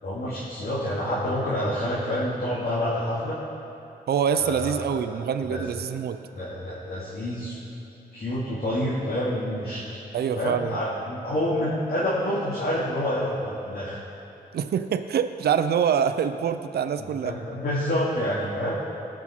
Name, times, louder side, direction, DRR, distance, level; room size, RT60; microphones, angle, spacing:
voice 1, 0.0-3.4 4.3-5.6 6.3-7.5 8.1-9.8 10.4-14.0 17.0-18.8, left 1 dB, 70° left, -8 dB, 2.2 m, -28 dB
voice 2, 4.1-6.2 10.1-10.7 14.5-17.3, right 8 dB, 75° right, 9 dB, 0.4 m, -25 dB
18.0 x 6.1 x 4.4 m, 3.0 s
cardioid pair, 70°, 17 cm